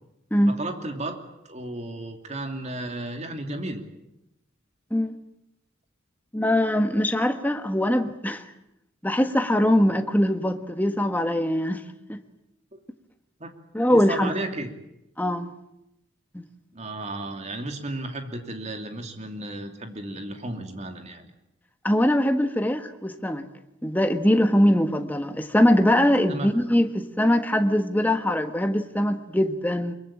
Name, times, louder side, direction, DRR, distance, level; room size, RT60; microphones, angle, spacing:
voice 1, 0.5-3.8 12.7-12.8 13.4-13.5 13.9-14.7 16.7-21.2 26.3-26.5, right 2 dB, 35° right, 5 dB, 2.8 m, -34 dB
voice 2, 6.3-8.4 9.0-11.8 12.1-12.2 13.7-14.4 15.2-15.5 16.3-16.4 21.8-23.5 23.8-29.9, left 1 dB, 10° left, 7 dB, 1.4 m, -22 dB
23.0 x 22.5 x 8.7 m, 0.87 s
head